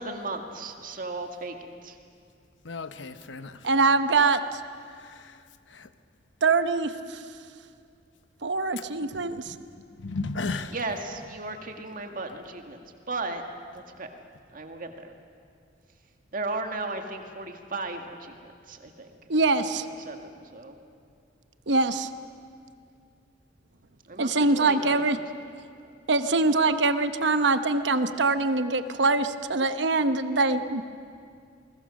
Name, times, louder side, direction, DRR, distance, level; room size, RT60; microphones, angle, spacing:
voice 1, 0.0-2.0 10.7-13.4 13.7-14.1 14.5-15.1 16.3-19.1 20.0-20.8 24.1-25.1, right 2 dB, 50° right, 4 dB, 2.0 m, -36 dB
voice 2, 2.6-3.6 5.0-5.3 5.7-5.9 9.1-9.2 9.5-9.6 10.0-10.7, left 3 dB, 80° left, 11 dB, 1.0 m, -34 dB
voice 3, 3.6-4.6 6.4-7.2 8.4-9.5 19.3-19.9 21.7-22.1 24.2-25.2 26.1-30.8, right 3 dB, 70° right, 10 dB, 1.0 m, -23 dB
29.0 x 21.0 x 6.6 m, 2.3 s
head